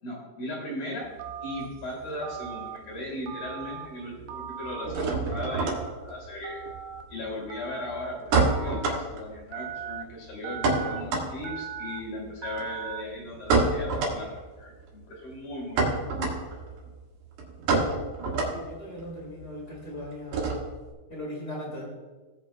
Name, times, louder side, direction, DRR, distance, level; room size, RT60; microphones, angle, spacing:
voice 1, 0.0-1.1 1.4-6.6 7.1-16.1, left 1 dB, 55° left, -2 dB, 4.3 m, -37 dB
sound 1, 1.0-2.7 2.9-3.6 3.9-20.9, right 3 dB, 70° right, 3.6 m, -29 dB
Telephone, 1.2-1.7 2.2-2.8 3.3-3.9 4.3-4.9 5.3-5.9 6.4-7.0 7.5-8.0 8.5-9.0 9.5-10.0 10.4-11.0 11.4-12.0 12.4-13.0, right 8 dB, 90° right, 2.1 m, -38 dB
voice 2, 18.5-20.4 21.1-21.8, left 1 dB, 85° left, -3 dB, 0.6 m, -38 dB
18.5 x 8.2 x 2.3 m, 1.3 s
omnidirectional pair, 5.0 m